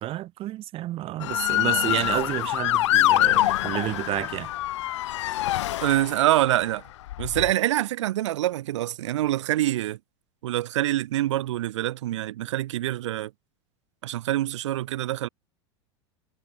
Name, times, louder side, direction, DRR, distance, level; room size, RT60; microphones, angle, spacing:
voice 1, 0.0-4.5, right 14 dB, 40° right, 0.8 m, -30 dB
Motor vehicle (road) / Siren, 1.2-6.4 7.1-7.5, left 15 dB, 80° left, 0.4 m, -25 dB
voice 2, 5.8-6.8 7.2-10.0 10.4-13.3 14.0-15.3, right 14 dB, 80° right, 0.6 m, -25 dB
hypercardioid pair, 105°, 15 cm